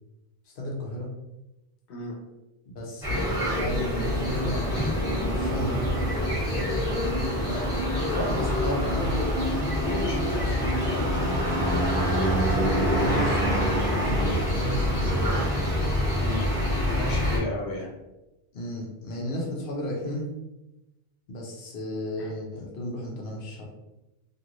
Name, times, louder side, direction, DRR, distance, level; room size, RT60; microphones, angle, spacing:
voice 1, 0.6-1.1 2.7-6.6 7.4-9.2 12.9-15.4 18.5-20.3 21.3-23.6, left 1 dB, 55° left, -2 dB, 0.8 m, -34 dB
sound 1, 3.0-17.4, equal, 5° right, 1.1 m, -25 dB
voice 2, 9.8-11.2 16.2-16.4 16.9-17.9 22.2-22.3, left 1 dB, 80° left, -2 dB, 1.1 m, -34 dB
3.0 x 2.5 x 2.5 m, 0.97 s
omnidirectional pair, 1.1 m